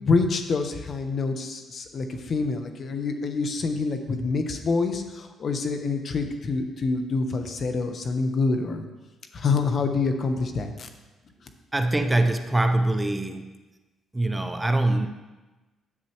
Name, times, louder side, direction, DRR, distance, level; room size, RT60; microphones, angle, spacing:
voice 1, 0.0-8.8 9.3-10.9, left 4 dB, 50° left, 6 dB, 0.9 m, -26 dB
voice 2, 11.7-13.6 14.1-15.1, right 2 dB, 15° right, 7 dB, 0.6 m, -23 dB
9.7 x 7.5 x 3.0 m, 1.2 s
cardioid pair, 90°, 0 cm